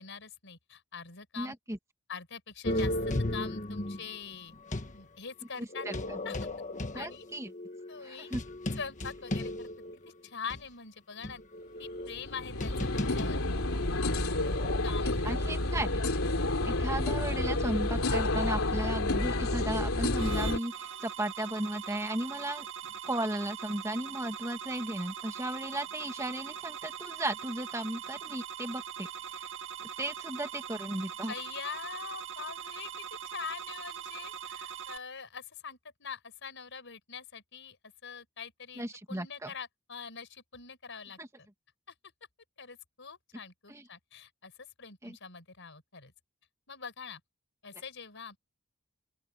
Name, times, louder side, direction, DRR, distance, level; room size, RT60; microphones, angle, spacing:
voice 1, 0.0-1.5 2.1-4.5 4.9-5.9 6.2-6.4 6.9-7.3 7.9-8.3 8.8-9.7 10.2-11.4 11.8-13.7 14.4-14.5 14.8-15.4 15.7-15.8 31.3-32.9 33.3-37.8 38.0-41.2 41.9-42.0 42.6-46.1 46.7-47.2 47.6-48.4, left 6 dB, 60° left, 5.8 m, -44 dB
voice 2, 1.4-1.8 5.6-6.2 6.9-7.5 8.0-8.4 15.2-16.3 16.6-22.7 23.0-29.5 30.0-31.3 38.8-39.5 41.2-41.3 43.7-43.8 45.0-45.2, right 1 dB, 15° right, 2.4 m, -35 dB
sound 1, 2.6-5.0 5.7-10.1 10.5-10.6 11.2-14.8, left 1 dB, 35° left, 1.4 m, -36 dB
sound 2, 11.8-20.6, left 2 dB, 80° left, 3.2 m, -30 dB
sound 3, 20.2-35.0, right 9 dB, 60° right, 2.3 m, -42 dB
open air
head